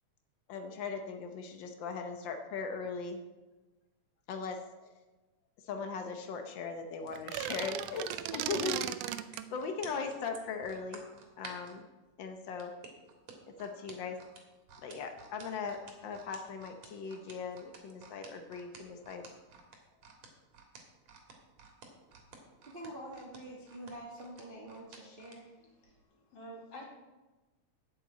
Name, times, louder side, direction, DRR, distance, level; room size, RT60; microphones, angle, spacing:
voice 1, 0.5-3.2 4.3-4.7 5.7-8.9 9.5-11.0 11.4-11.9 12.2-12.7 13.6-14.2 14.8-19.2, left 5 dB, 90° left, 5 dB, 1.0 m, -39 dB
sound 1, 7.0-11.8 12.6-25.4 25.8-26.0, right 5 dB, 65° right, 2.9 m, -52 dB
sound 2, 7.1-9.5, right 12 dB, 90° right, 1.4 m, -36 dB
voice 2, 22.6-25.5, right 1 dB, 30° right, -1 dB, 1.0 m, -46 dB
voice 3, 25.8-26.9, equal, 55° left, -1 dB, 3.2 m, -50 dB
8.3 x 7.1 x 8.5 m, 1.1 s
omnidirectional pair, 3.4 m